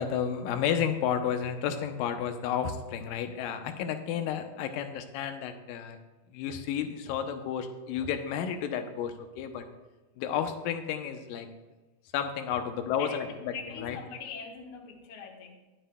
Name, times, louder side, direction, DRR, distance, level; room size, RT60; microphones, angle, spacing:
voice 1, 0.0-6.0 6.3-9.6 10.2-11.5 12.1-13.3 13.8-14.0, left 8 dB, 90° left, 7 dB, 2.4 m, -31 dB
voice 2, 13.0-15.6, left 6 dB, 55° left, 1 dB, 1.7 m, -42 dB
21.0 x 7.7 x 2.2 m, 1.2 s
omnidirectional pair, 3.9 m